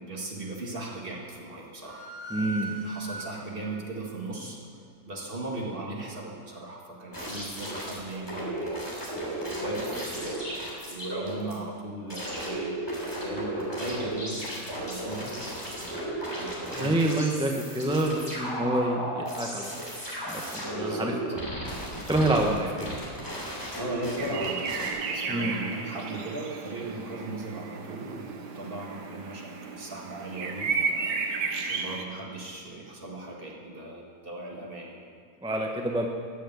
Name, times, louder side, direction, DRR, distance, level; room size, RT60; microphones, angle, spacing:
voice 1, 0.0-2.1 2.4-4.6 5.1-9.0 9.6-17.2 20.7-21.2 22.2-23.0 23.8-31.1 31.6-35.0, right 2 dB, 35° right, -2 dB, 1.9 m, -38 dB
sound 1, 1.8-3.7, right 2 dB, 40° left, 3.7 m, -39 dB
voice 2, 2.3-2.7 16.7-19.7 20.3-21.1 22.1-22.7 25.3-25.5 35.4-36.1, right 1 dB, 5° right, 1 dB, 0.5 m, -27 dB
sound 2, 7.1-11.5 12.1-24.9, right 1 dB, 15° left, 2.9 m, -34 dB
sound 3, 24.2-32.0, right 5 dB, 80° right, 1.5 m, -33 dB
13.5 x 6.9 x 8.0 m, 2.1 s
omnidirectional pair, 1.8 m